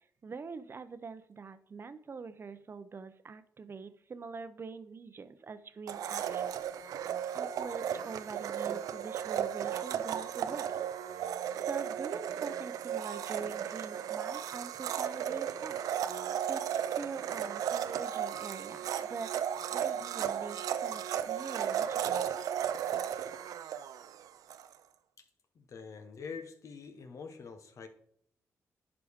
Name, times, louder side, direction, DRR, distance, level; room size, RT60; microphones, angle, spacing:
voice 1, 0.0-6.7 7.1-10.8 11.1-15.8 16.1-19.3 19.7-22.3, right 5 dB, 40° right, 12 dB, 0.7 m, -44 dB
Domestic sounds home sounds, 5.9-24.7, right 9 dB, 85° right, 0.4 m, -35 dB
voice 2, 25.5-27.9, left 5 dB, 60° left, 7 dB, 1.1 m, -45 dB
11.0 x 5.0 x 3.6 m, 0.66 s
cardioid pair, 80°, 6 cm